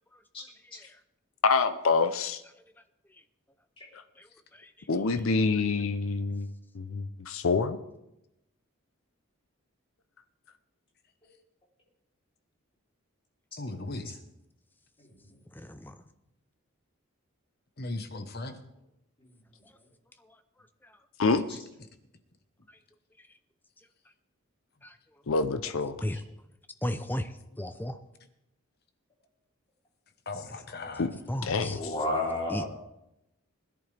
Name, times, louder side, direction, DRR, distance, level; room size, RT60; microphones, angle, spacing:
voice 1, 0.6-1.0 3.1-3.2 4.2-4.9 15.5-16.0 19.6-19.7 20.2-20.4 20.8-21.0 23.2-23.3 24.8-25.0 26.0-26.2 26.8-28.0 31.3-31.8 32.5-32.6, left 1 dB, 10° left, 10 dB, 0.5 m, -36 dB
voice 2, 1.4-2.4 4.9-6.5 6.7-7.8 21.2-21.4 25.3-26.0 31.0-31.1 31.4-31.8, left 4 dB, 75° left, 9 dB, 0.6 m, -26 dB
voice 3, 13.6-14.2 17.8-18.6 30.3-31.1, left 2 dB, 50° left, 8 dB, 1.1 m, -37 dB
voice 4, 15.0-15.3 21.5-21.6 31.7-32.6, left 2 dB, 25° left, -3 dB, 3.3 m, -34 dB
20.5 x 11.0 x 3.4 m, 0.87 s
head